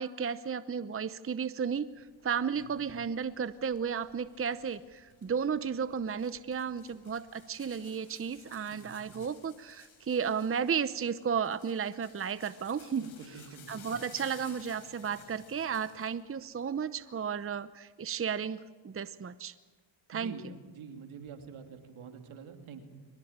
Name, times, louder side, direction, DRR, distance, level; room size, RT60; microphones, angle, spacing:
voice 1, 0.0-13.0 13.7-19.5 20.1-20.3, right 7 dB, 25° right, 14 dB, 0.8 m, -33 dB
sound 1, 1.9-16.2 16.5-17.5, left 7 dB, 90° left, 5.7 m, -57 dB
voice 2, 13.0-13.7 20.1-22.8, right 5 dB, 75° right, 5 dB, 3.1 m, -46 dB
23.5 x 20.0 x 8.8 m, 1.4 s
cardioid pair, 70°, 49 cm